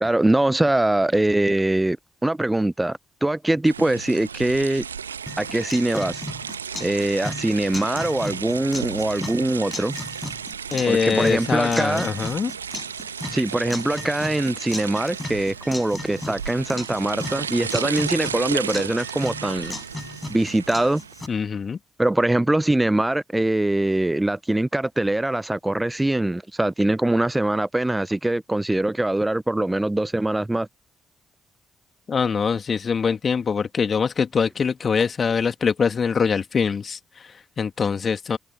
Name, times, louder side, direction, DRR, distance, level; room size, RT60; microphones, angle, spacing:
voice 1, 0.0-2.0 2.2-4.9 5.4-6.2 6.8-9.9 10.9-12.1 13.3-19.7 20.3-21.0 22.0-30.7, right 1 dB, 15° right, 0.7 m, -22 dB
sound 1, 3.7-21.3, right 7 dB, 85° right, 1.2 m, -34 dB
sound 2, 5.3-21.3, left 2 dB, 15° left, 5.0 m, -36 dB
voice 2, 10.7-12.5 21.3-21.8 32.1-38.4, left 6 dB, 45° left, 2.7 m, -23 dB
figure-of-eight pair, 40°, 0 cm